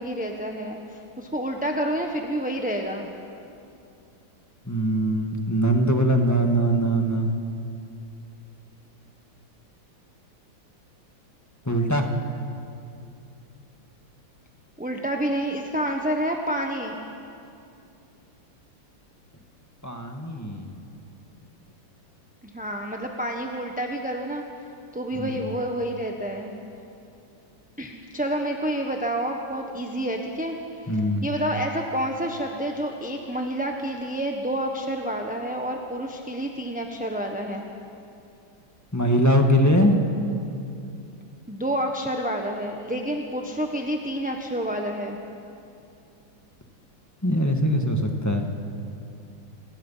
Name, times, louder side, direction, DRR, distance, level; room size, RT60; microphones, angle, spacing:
voice 1, 0.0-3.1 14.8-16.9 22.5-24.4 24.9-26.5 27.8-37.6 41.5-45.2, right 1 dB, 5° right, 2 dB, 0.8 m, -29 dB
voice 2, 4.7-7.3 11.6-12.1 19.8-20.7 25.2-25.3 30.9-31.2 38.9-40.0 47.2-48.5, equal, 10° left, 3 dB, 1.5 m, -22 dB
28.0 x 19.5 x 5.7 m, 2.6 s
omnidirectional pair, 2.1 m